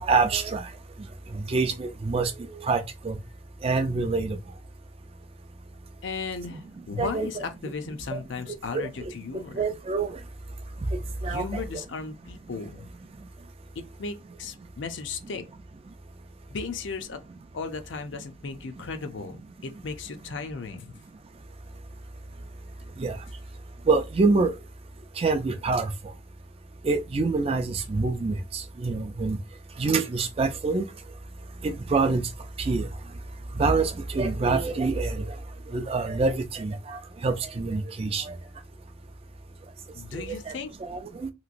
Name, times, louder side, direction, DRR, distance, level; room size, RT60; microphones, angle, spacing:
voice 1, 0.0-0.7 1.3-2.3 2.6-3.2 3.6-4.4 7.0-7.4 8.1-8.2 8.7-9.1 9.5-10.2 11.2-11.6 23.0-23.2 23.9-24.5 25.2-25.9 26.8-29.4 29.8-30.9 31.6-32.2 32.6-32.9 33.6-35.3 35.7-38.3 40.3-40.5 40.8-41.3, right 3 dB, 30° right, 0.3 m, -26 dB
voice 2, 6.0-9.6 11.2-12.9 13.8-15.4 16.5-17.2 17.5-21.0 39.9-40.7, left 4 dB, 65° left, 0.5 m, -36 dB
3.0 x 2.9 x 2.5 m
head